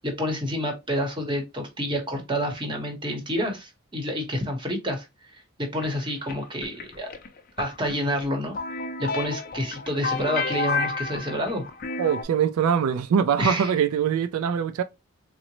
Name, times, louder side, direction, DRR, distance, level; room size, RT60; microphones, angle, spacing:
voice 1, 0.0-7.1 7.6-8.6 9.0-11.6 13.4-13.7, equal, 20° right, 0.8 m, -29 dB
sound 1, 5.8-12.2, left 3 dB, 40° left, 0.5 m, -30 dB
voice 2, 12.0-14.8, right 7 dB, 80° right, 0.3 m, -23 dB
3.8 x 2.0 x 2.9 m
head